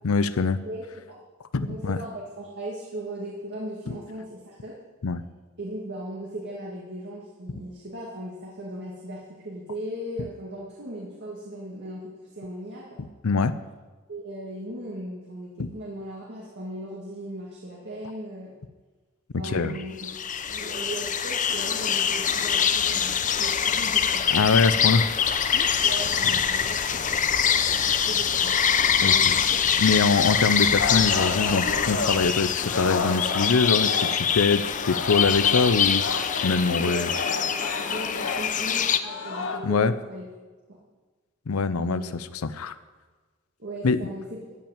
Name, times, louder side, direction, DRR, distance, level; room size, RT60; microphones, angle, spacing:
voice 1, 0.0-0.6 1.5-2.0 3.9-4.0 5.0-5.2 13.2-13.5 15.6-15.7 19.4-19.8 24.3-25.1 29.0-29.1 29.8-37.1 39.6-39.9 41.5-42.7 43.8-44.0, left 4 dB, 85° left, 13 dB, 0.6 m, -24 dB
voice 2, 0.6-1.2 1.6-4.7 5.6-13.0 14.1-18.5 19.3-20.1 20.5-24.2 25.8-28.6 29.0-29.3 36.5-40.3 41.8-42.2 43.6-44.4, right 1 dB, 55° right, -3 dB, 2.1 m, -38 dB
sound 1, 19.5-39.0, left 7 dB, 40° left, 0.7 m, -24 dB
Singing, 30.8-34.4 34.7-39.6, left 3 dB, 65° left, 1.3 m, -32 dB
14.0 x 5.8 x 8.9 m, 1.3 s
head